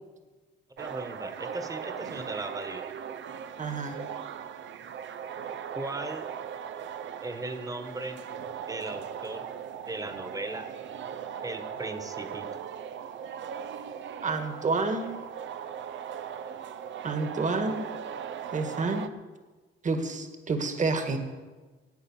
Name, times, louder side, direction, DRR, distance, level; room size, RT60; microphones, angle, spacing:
voice 1, 0.8-2.9 5.7-6.3 7.2-8.2 8.7-9.5 9.9-10.7 11.4-12.5, right 2 dB, 15° right, 9 dB, 1.5 m, -37 dB
sound 1, 0.8-19.1, right 8 dB, 70° right, 0.8 m, -39 dB
voice 2, 3.6-4.0 14.2-15.1 17.0-17.8 18.5-19.0 19.8-21.2, right 3 dB, 40° right, 7 dB, 2.0 m, -29 dB
16.5 x 8.7 x 7.3 m, 1.3 s
cardioid pair, 90°, 20 cm